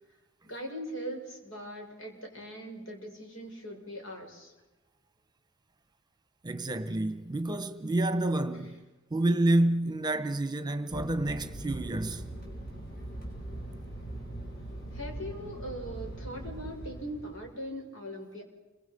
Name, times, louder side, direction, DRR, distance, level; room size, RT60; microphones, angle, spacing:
voice 1, 0.4-4.5 8.5-8.7 14.9-18.4, equal, 75° left, 6.5 m, -40 dB
voice 2, 6.4-8.8 9.1-12.2, right 1 dB, 20° right, 1.3 m, -28 dB
Fixed-wing aircraft airplane, 10.9-17.6, right 1 dB, 50° left, 6.0 m, -41 dB
30.0 x 25.0 x 5.4 m
head